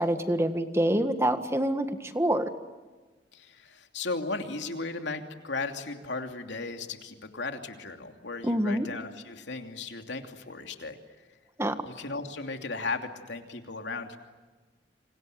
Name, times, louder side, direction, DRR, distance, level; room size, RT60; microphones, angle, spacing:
voice 1, 0.0-2.5 8.4-8.9 11.6-11.8, right 1 dB, 15° right, 8 dB, 1.6 m, -26 dB
voice 2, 3.3-11.0 11.9-14.2, left 3 dB, 85° left, 5 dB, 2.8 m, -36 dB
28.5 x 26.5 x 7.8 m, 1.4 s
head